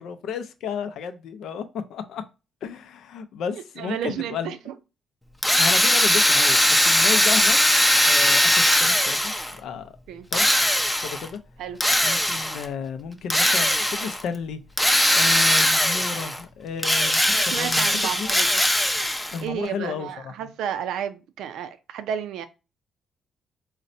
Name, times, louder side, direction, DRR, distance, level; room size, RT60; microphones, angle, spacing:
voice 1, 0.0-1.6 1.9-2.2 2.6-4.5 5.6-10.0 10.3-10.7 11.0-11.4 12.0-14.6 15.1-18.3 19.3-20.5, left 6 dB, 75° left, 0.5 m, -33 dB
voice 2, 3.8-4.7 10.1-10.3 11.6-11.8 17.3-18.6 19.4-22.4, right 9 dB, 85° right, 0.4 m, -32 dB
Drill, 5.4-9.6 10.3-11.3 11.8-12.7 13.3-14.2 14.8-16.4 16.8-19.4, left 1 dB, 5° left, 0.5 m, -20 dB
3.9 x 2.1 x 2.6 m
cardioid pair, 90°, 0 cm